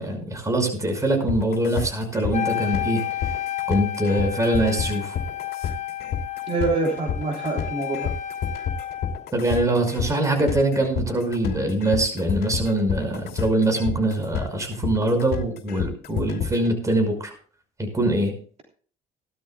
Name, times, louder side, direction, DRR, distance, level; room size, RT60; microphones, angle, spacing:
voice 1, 0.0-3.3 3.7-5.2 9.3-17.3 17.8-18.3, right 1 dB, 20° right, 5 dB, 5.7 m, -23 dB
sound 1, 1.3-16.7, left 8 dB, 70° left, 2.7 m, -30 dB
Wind instrument woodwind instrument, 2.3-9.3, left 12 dB, 45° left, 1.3 m, -31 dB
voice 2, 6.5-8.1, right 3 dB, 40° right, 0 dB, 3.4 m, -25 dB
18.5 x 13.0 x 2.4 m, 0.43 s
cardioid pair, 110°, 17 cm